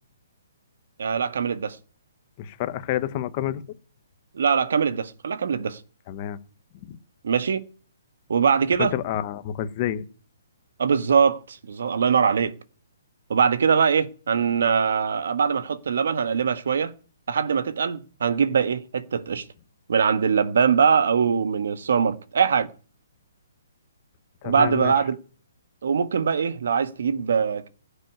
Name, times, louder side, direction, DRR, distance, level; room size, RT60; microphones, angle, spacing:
voice 1, 1.0-1.8 4.3-5.8 7.2-7.7 8.3-8.9 10.8-12.5 13.3-16.9 17.3-19.4 19.9-22.7 24.4-25.2 25.8-27.7, right 6 dB, 65° right, 1.3 m, -22 dB
voice 2, 2.4-3.6 6.1-6.4 6.9-7.0 8.8-10.0 24.4-24.9, left 12 dB, 25° left, 1.0 m, -28 dB
15.5 x 6.8 x 9.3 m
hypercardioid pair, 170°, 0 cm